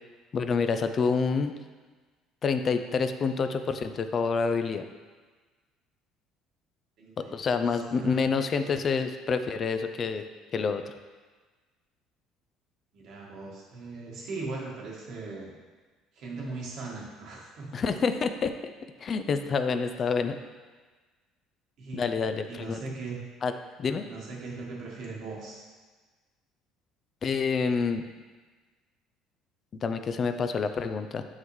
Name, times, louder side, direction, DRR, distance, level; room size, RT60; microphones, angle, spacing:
voice 1, 0.3-1.5 2.4-4.9 7.2-10.2 10.5-10.9 17.7-18.5 19.0-20.4 21.9-22.8 23.4-23.5 23.8-24.1 27.2-28.0 29.8-31.2, left 5 dB, 40° left, 9 dB, 0.4 m, -27 dB
voice 2, 7.0-7.6 7.9-8.4 12.9-15.5 16.1-17.7 21.8-23.2 24.0-25.6, right 3 dB, 60° right, -3 dB, 1.5 m, -39 dB
6.2 x 5.6 x 3.1 m, 1.4 s
supercardioid pair, 100°, 0 cm